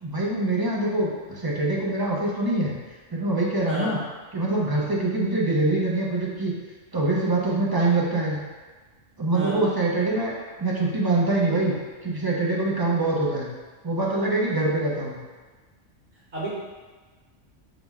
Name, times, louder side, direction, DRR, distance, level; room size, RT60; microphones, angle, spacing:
voice 1, 0.0-2.7 3.1-4.0 4.3-6.5 6.9-8.4 9.2-10.3 10.6-11.7 12.0-13.5 13.8-15.2, right 2 dB, 35° right, -4 dB, 0.4 m, -24 dB
voice 2, 3.7-3.9 9.3-9.6 16.3-16.5, right 2 dB, 50° right, -7 dB, 1.3 m, -30 dB
5.8 x 2.1 x 3.5 m, 1.4 s
omnidirectional pair, 1.3 m